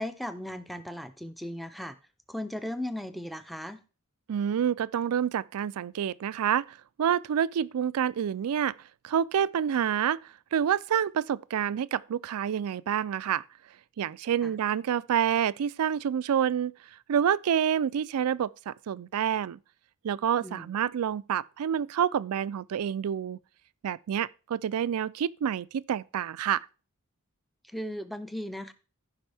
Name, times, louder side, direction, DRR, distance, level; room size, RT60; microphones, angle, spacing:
voice 1, 0.0-2.0 2.3-3.8 14.4-14.5 20.4-20.7 27.7-28.7, left 1 dB, ahead, 0.6 m, -37 dB
voice 2, 4.3-8.7 9.0-10.2 10.5-13.4 14.0-16.7 17.1-19.6 20.0-23.4 23.8-26.7, right 9 dB, 80° right, 0.4 m, -28 dB
14.5 x 5.2 x 3.4 m
head